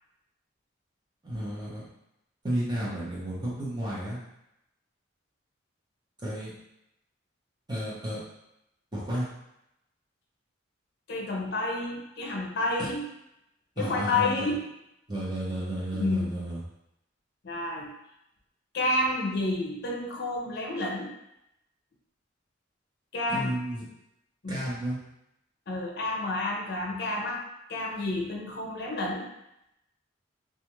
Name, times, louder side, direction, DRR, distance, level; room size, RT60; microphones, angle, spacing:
voice 1, 1.2-1.9 2.4-4.2 6.2-6.5 7.7-8.2 8.9-9.3 12.8-12.9 13.8-14.5 15.1-16.6 23.3-23.8 24.5-25.0, right 1 dB, 20° right, -8 dB, 0.9 m, -32 dB
voice 2, 11.1-13.0 13.8-14.6 15.9-16.4 17.4-17.9 18.7-21.1 23.1-23.5 24.4-24.5 25.7-27.4 27.7-29.3, left 2 dB, 55° left, 0 dB, 0.6 m, -30 dB
2.4 x 2.4 x 3.0 m, 0.84 s
head